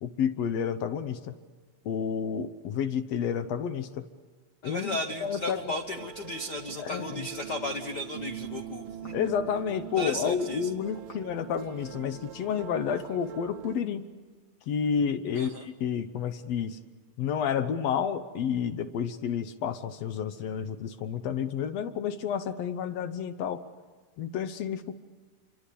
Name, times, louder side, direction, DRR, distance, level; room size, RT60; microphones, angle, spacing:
voice 1, 0.0-1.3 1.8-4.0 4.6-5.6 6.8-7.2 9.1-14.1 14.7-16.8 17.2-23.6 24.2-24.9, left 7 dB, 65° left, 11 dB, 1.8 m, -30 dB
voice 2, 4.6-9.1 10.0-10.7 15.3-15.7, left 1 dB, 85° left, 6 dB, 0.9 m, -35 dB
sound 1, 4.9-13.7, right 11 dB, 70° right, 1.3 m, -43 dB
28.0 x 24.5 x 8.5 m, 1.4 s
omnidirectional pair, 3.8 m